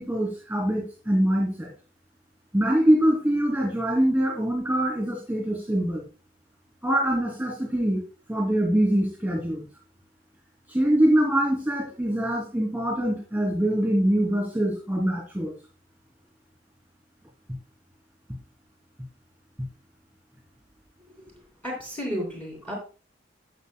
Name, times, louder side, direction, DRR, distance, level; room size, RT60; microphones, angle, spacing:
voice 1, 0.0-1.7 2.5-6.0 6.8-8.0 8.3-9.6 10.7-15.5, right 1 dB, 5° right, -1 dB, 2.9 m, -24 dB
voice 2, 21.6-22.7, equal, 10° left, -1 dB, 2.9 m, -32 dB
12.0 x 7.3 x 2.3 m, 0.35 s
head